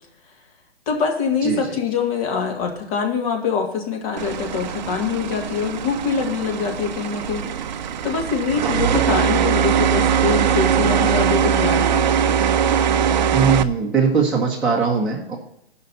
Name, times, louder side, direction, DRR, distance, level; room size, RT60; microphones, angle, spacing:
voice 1, 0.9-7.4 8.0-12.1 13.2-13.3, left 5 dB, 35° left, 2 dB, 2.0 m, -24 dB
sound 1, 4.2-13.6, right 8 dB, 45° right, 0.5 m, -21 dB
voice 2, 13.3-15.4, right 5 dB, ahead, -7 dB, 1.0 m, -20 dB
16.5 x 5.7 x 4.0 m, 0.78 s
hypercardioid pair, 150°, 31 cm